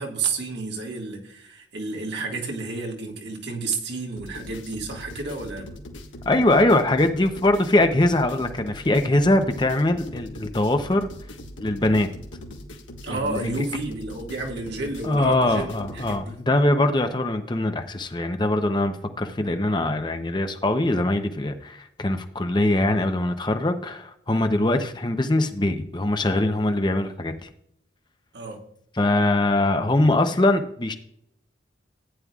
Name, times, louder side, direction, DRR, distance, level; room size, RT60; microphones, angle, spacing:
voice 1, 0.0-5.8 13.0-16.4 28.3-28.6, right 3 dB, 65° right, 1 dB, 1.9 m, -31 dB
sound 1, 4.2-16.2, left 1 dB, 90° left, 1.6 m, -40 dB
voice 2, 6.2-11.1 11.6-12.1 13.1-13.7 15.0-27.5 29.0-31.0, left 1 dB, 25° left, 7 dB, 0.7 m, -22 dB
14.5 x 9.7 x 2.4 m, 0.72 s
head